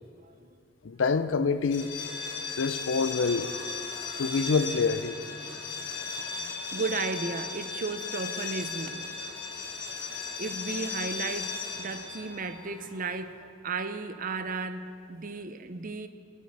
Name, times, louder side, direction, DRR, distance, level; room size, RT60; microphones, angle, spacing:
voice 1, 0.8-1.9 2.6-3.5 4.2-5.2, left 4 dB, 80° left, 0.5 m, -26 dB
sound 1, 1.6-13.3, left 4 dB, 65° left, 1.3 m, -36 dB
voice 2, 6.1-9.1 10.1-11.5 11.8-16.1, right 4 dB, 45° right, 0.6 m, -35 dB
20.5 x 8.3 x 4.7 m
head